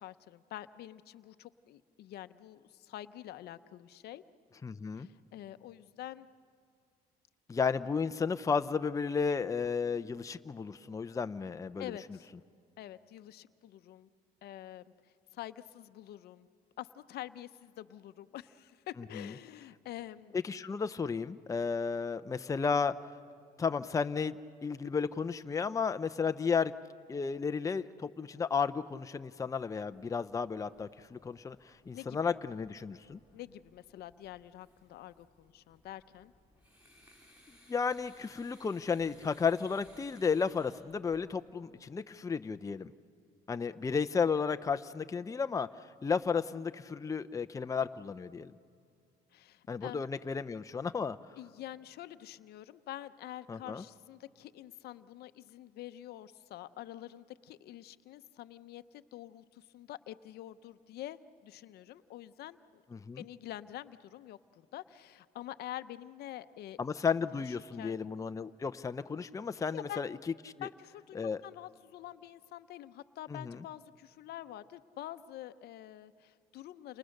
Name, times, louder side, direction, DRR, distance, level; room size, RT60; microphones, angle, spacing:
voice 1, 0.0-4.2 5.0-6.3 11.8-12.3 12.8-14.1 14.4-14.9 15.3-16.5 16.8-20.4 31.9-32.4 33.3-36.3 49.3-50.0 51.4-62.8 63.2-66.8 67.5-68.0 69.7-70.1 70.6-77.0, left 13 dB, 70° left, 12 dB, 0.8 m, -47 dB
voice 2, 4.6-5.1 7.5-11.9 19.1-19.3 20.3-23.0 23.6-24.4 24.6-26.7 27.1-33.2 37.7-42.9 43.5-45.7 46.0-48.5 49.7-51.2 53.5-53.8 62.9-63.3 66.8-70.1 70.6-70.7 71.1-71.4 73.3-73.6, left 5 dB, 20° left, 10 dB, 0.6 m, -33 dB
sound 1, 29.9-41.4, equal, 10° right, 7.0 m, -64 dB
29.5 x 28.0 x 6.6 m, 2.4 s
cardioid pair, 110°, 17 cm